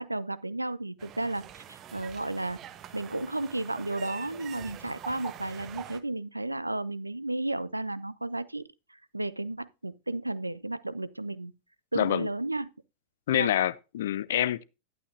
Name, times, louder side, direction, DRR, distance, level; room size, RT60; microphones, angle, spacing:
voice 1, 0.0-2.6 2.9-8.6 8.9-11.5 11.9-12.7 13.3-13.5, right 2 dB, 85° right, 0.6 m, -33 dB
sound 1, 1.0-6.0, right 10 dB, 35° right, 1.1 m, -45 dB
voice 2, 11.9-12.3 13.3-14.6, left 11 dB, 60° left, 0.5 m, -26 dB
12.0 x 11.0 x 2.7 m
figure-of-eight pair, 90°, 0 cm